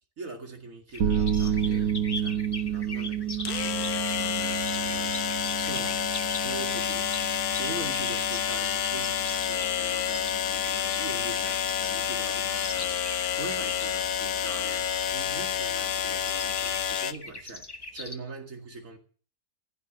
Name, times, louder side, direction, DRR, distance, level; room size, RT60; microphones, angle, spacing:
voice 1, 0.2-6.0 6.4-19.0, right 3 dB, 55° right, 3 dB, 2.5 m, -42 dB
sound 1, 0.9-18.1, left 3 dB, 20° left, 0.7 m, -42 dB
sound 2, 1.0-16.9, right 9 dB, 85° right, 1.9 m, -33 dB
sound 3, 1.4-1.5 3.4-17.1, left 9 dB, 75° left, 1.3 m, -29 dB
15.0 x 7.0 x 7.9 m, 0.43 s
omnidirectional pair, 1.6 m